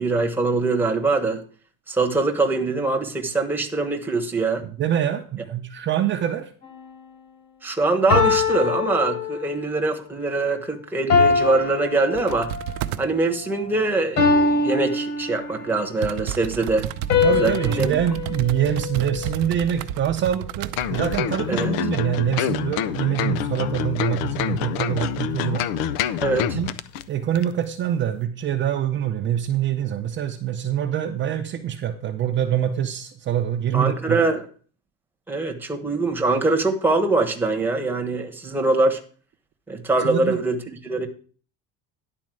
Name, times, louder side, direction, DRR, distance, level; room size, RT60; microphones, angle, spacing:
voice 1, 0.0-1.4 1.9-4.6 7.6-12.5 13.0-16.9 17.4-17.9 21.5-21.7 26.2-26.6 33.7-34.5 35.3-39.0 39.7-41.1, right 3 dB, 5° right, 5 dB, 1.1 m, -23 dB
voice 2, 4.6-6.5 17.2-25.7 26.5-26.7 27.1-34.2 40.0-40.4, right 10 dB, 35° right, 3 dB, 0.7 m, -25 dB
sound 1, 6.6-7.0 8.1-9.7 11.1-12.7 14.2-15.8 17.1-19.5, left 4 dB, 50° left, 4.0 m, -23 dB
sound 2, 12.1-13.1 15.2-15.3 16.0-21.3 21.6-21.7, right 12 dB, 80° right, 0.7 m, -32 dB
sound 3, 20.8-27.0 27.3-27.5, left 9 dB, 85° left, 0.7 m, -26 dB
11.0 x 4.3 x 7.6 m, 0.42 s
cardioid pair, 165°, 34 cm